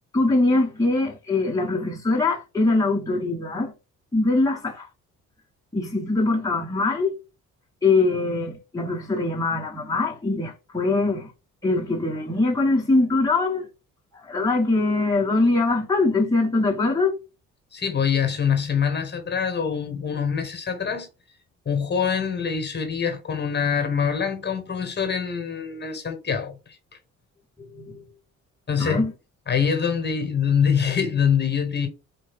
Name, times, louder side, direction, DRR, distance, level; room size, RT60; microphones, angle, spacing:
voice 1, 0.1-3.7 4.1-4.9 5.7-7.2 7.8-11.3 11.6-13.7 14.2-17.2 27.6-28.0 28.8-29.1, left 3 dB, 10° left, 1.2 m, -22 dB
voice 2, 17.7-21.1 21.6-26.5 28.7-29.0 29.5-31.9, left 7 dB, 35° left, 1.4 m, -24 dB
4.3 x 2.6 x 3.6 m
cardioid pair, 90°, 30 cm